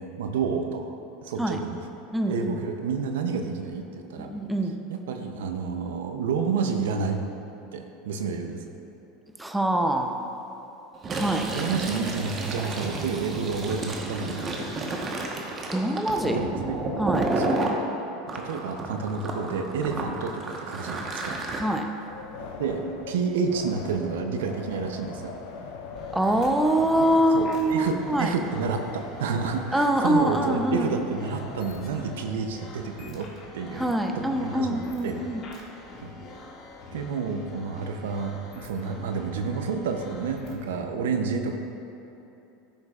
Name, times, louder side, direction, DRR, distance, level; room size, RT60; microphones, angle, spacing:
voice 1, 0.0-1.9 2.3-4.3 4.9-7.2 7.7-8.6 11.4-14.7 16.2-16.8 17.4-17.5 18.3-21.4 22.6-25.3 27.3-33.3 33.5-35.2 36.0-36.1 36.9-41.6, right 5 dB, 85° right, 5 dB, 0.6 m, -30 dB
voice 2, 2.1-2.6 4.2-4.7 9.4-10.1 11.1-11.5 15.7-16.4 17.0-17.3 21.6-21.9 26.1-28.3 29.7-30.9 33.8-35.4, right 1 dB, 5° right, 3 dB, 0.7 m, -24 dB
Fill (with liquid), 11.0-17.8 18.3-21.6, right 2 dB, 35° right, 1.1 m, -31 dB
Wind, 22.0-32.4, left 4 dB, 75° left, 0.9 m, -41 dB
sound 1, 25.9-40.7, left 2 dB, 45° left, 1.8 m, -45 dB
13.5 x 6.5 x 2.4 m, 3.0 s
hypercardioid pair, 100°, 0 cm